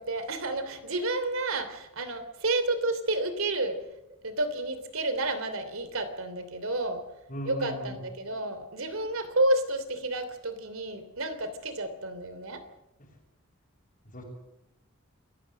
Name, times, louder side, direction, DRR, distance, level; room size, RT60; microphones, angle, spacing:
voice 1, 0.0-3.8 4.2-7.0 7.4-12.6, right 2 dB, 75° right, 11 dB, 3.1 m, -30 dB
voice 2, 7.3-8.0 14.0-14.2, equal, 40° left, -4 dB, 6.0 m, -37 dB
27.0 x 15.5 x 7.6 m, 0.91 s
head